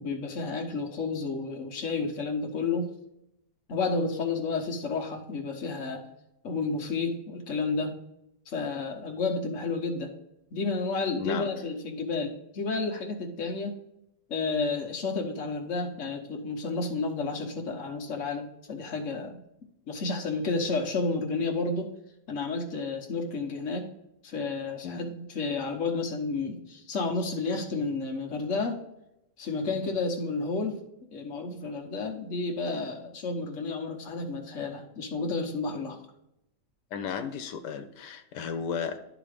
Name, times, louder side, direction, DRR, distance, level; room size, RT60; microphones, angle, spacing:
voice 1, 0.0-2.9 3.7-6.0 6.4-7.9 8.5-10.1 10.5-13.8 14.3-19.4 19.9-21.9 22.3-23.9 24.2-28.8 29.4-30.8 31.1-36.0, left 3 dB, 50° left, 2 dB, 1.4 m, -31 dB
voice 2, 11.2-11.5 24.8-25.0 29.7-29.8 36.9-39.0, left 6 dB, 90° left, 8 dB, 1.4 m, -34 dB
11.5 x 4.0 x 5.0 m, 0.83 s
omnidirectional pair, 1.8 m